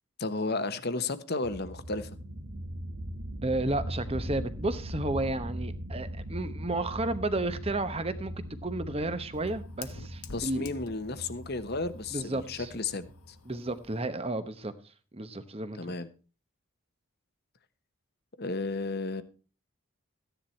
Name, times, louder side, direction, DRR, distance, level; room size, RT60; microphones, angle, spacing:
voice 1, 0.2-2.1 10.3-13.4 15.8-16.1 18.4-19.2, left 3 dB, 45° left, 1.1 m, -33 dB
sound 1, 1.4-13.8, equal, 80° right, 1.7 m, -40 dB
voice 2, 3.4-10.7 12.1-12.7 13.5-14.7 15.1-15.9, right 2 dB, 25° right, 0.9 m, -32 dB
Fire, 7.9-14.0, left 6 dB, 85° left, 1.1 m, -51 dB
14.5 x 10.0 x 4.4 m
head